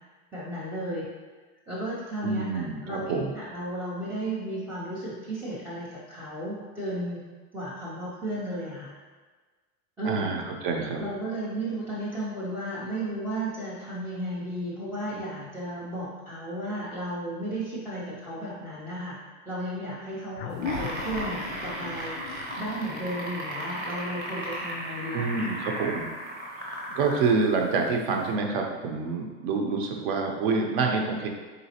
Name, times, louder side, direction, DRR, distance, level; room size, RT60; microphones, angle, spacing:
voice 1, 0.3-1.1 1.7-2.5 2.8-7.3 7.5-8.9 10.0-10.3 11.0-22.1 22.6-25.5, right 1 dB, 5° right, -11 dB, 0.3 m, -34 dB
voice 2, 2.2-3.4 10.0-11.1 25.1-26.1 26.6-31.3, right 4 dB, 60° right, 2 dB, 0.6 m, -27 dB
sound 1, 20.4-25.2, left 5 dB, 75° left, 0.5 m, -39 dB
sound 2, 20.5-27.4 28.3-28.4, right 1 dB, 25° right, 0.8 m, -35 dB
4.0 x 3.8 x 2.8 m, 1.4 s
supercardioid pair, 170°, 31 cm